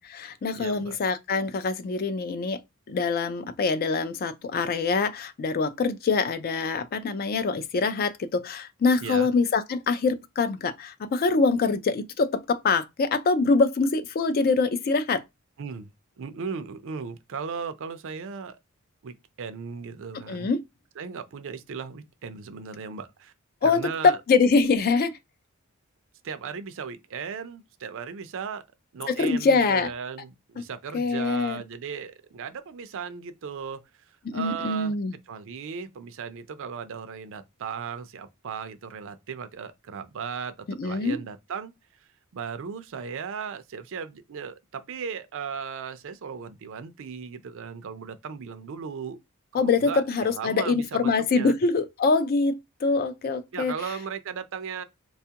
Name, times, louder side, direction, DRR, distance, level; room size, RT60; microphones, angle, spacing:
voice 1, 0.0-2.6 2.9-15.2 20.3-20.6 23.6-25.1 29.1-29.9 30.9-31.6 34.3-35.1 40.8-41.2 49.5-53.7, left 4 dB, 45° left, 0.3 m, -24 dB
voice 2, 0.5-1.0 9.0-9.3 15.6-15.9 16.2-18.6 19.0-20.5 21.0-23.3 23.6-24.2 26.2-28.6 28.9-33.8 34.3-34.9 35.3-41.7 42.3-49.2 49.5-51.6 53.5-54.8, right 6 dB, 60° right, 0.4 m, -36 dB
4.2 x 2.3 x 2.8 m
head